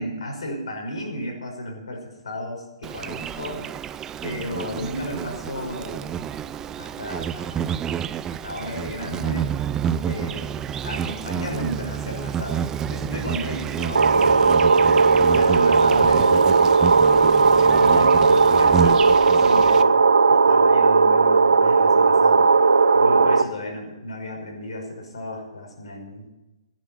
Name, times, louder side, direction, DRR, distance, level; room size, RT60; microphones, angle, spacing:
voice 1, 0.0-3.7 4.2-6.3 6.8-7.7 8.3-9.5 9.9-14.7 15.3-16.6 17.1-20.0 20.3-22.4 22.9-26.3, left 1 dB, 75° left, 2 dB, 5.9 m, -33 dB
Insect, 2.8-19.8, right 8 dB, 15° right, 0.5 m, -29 dB
sound 1, 14.0-23.4, right 4 dB, 85° right, 0.8 m, -16 dB
17.5 x 10.5 x 5.7 m, 1.0 s
hypercardioid pair, 135°, 3 cm